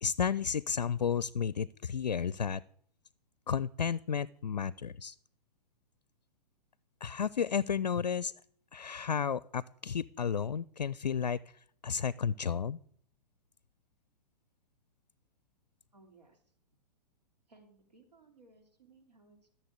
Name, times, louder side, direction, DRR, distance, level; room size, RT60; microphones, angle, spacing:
voice 1, 0.0-2.6 3.5-5.1 7.0-8.3 8.7-11.4 11.8-12.8, left 7 dB, 85° left, 21 dB, 0.4 m, -32 dB
voice 2, 15.9-16.4 17.5-19.6, right 3 dB, 80° right, 3 dB, 2.8 m, -61 dB
15.0 x 6.9 x 8.1 m, 0.64 s
figure-of-eight pair, 110°, 21 cm